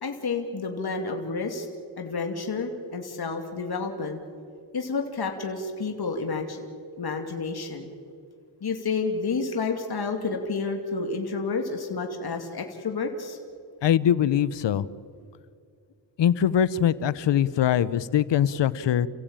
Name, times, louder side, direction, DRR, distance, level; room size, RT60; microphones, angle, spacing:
voice 1, 0.0-1.7 2.0-4.2 4.7-6.6 7.0-7.9 8.6-13.4, left 4 dB, 60° left, 3 dB, 2.7 m, -30 dB
voice 2, 13.8-14.9 16.2-19.1, left 9 dB, 90° left, 18 dB, 0.8 m, -22 dB
30.0 x 16.0 x 8.8 m, 2.4 s
cardioid pair, 60°, 42 cm